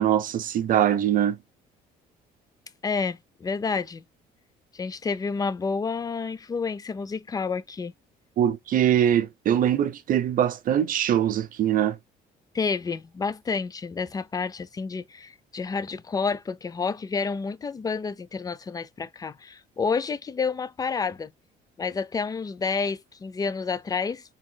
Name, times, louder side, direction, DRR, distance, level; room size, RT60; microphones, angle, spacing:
voice 1, 0.0-1.4 8.4-12.0, right 10 dB, 55° right, 0.7 m, -22 dB
voice 2, 2.8-4.0 4.7-7.9 12.5-21.3 21.8-24.2, left 5 dB, 20° left, 0.4 m, -29 dB
4.2 x 3.5 x 2.2 m
cardioid pair, 110°, 17 cm